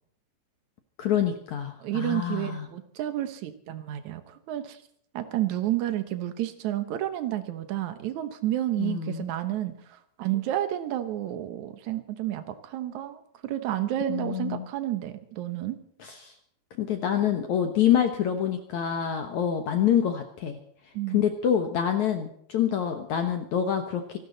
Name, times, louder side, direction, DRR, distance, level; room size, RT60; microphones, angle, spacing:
voice 1, 1.0-2.7 8.8-9.3 14.1-14.7 16.0-16.3 16.8-20.6 21.1-24.2, left 9 dB, 70° left, 6 dB, 1.8 m, -26 dB
voice 2, 1.8-4.8 5.1-15.8 20.9-21.2, right 13 dB, 75° right, 10 dB, 1.7 m, -30 dB
26.5 x 12.5 x 4.1 m, 0.66 s
omnidirectional pair, 5.0 m